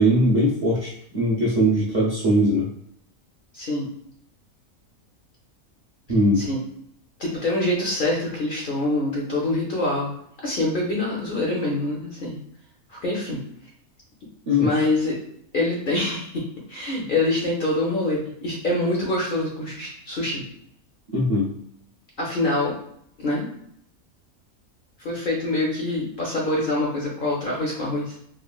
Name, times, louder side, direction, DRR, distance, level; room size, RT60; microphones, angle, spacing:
voice 1, 0.0-2.7 6.1-6.4 14.5-14.7 21.1-21.5, equal, 55° right, -7 dB, 0.4 m, -20 dB
voice 2, 3.5-3.9 6.4-6.6 7.2-10.1 10.4-12.4 12.9-13.4 14.6-15.2 15.5-20.4 22.2-22.7 23.2-23.5 25.0-28.2, left 2 dB, 60° left, -3 dB, 0.5 m, -25 dB
3.1 x 2.3 x 2.3 m, 0.70 s
omnidirectional pair, 1.5 m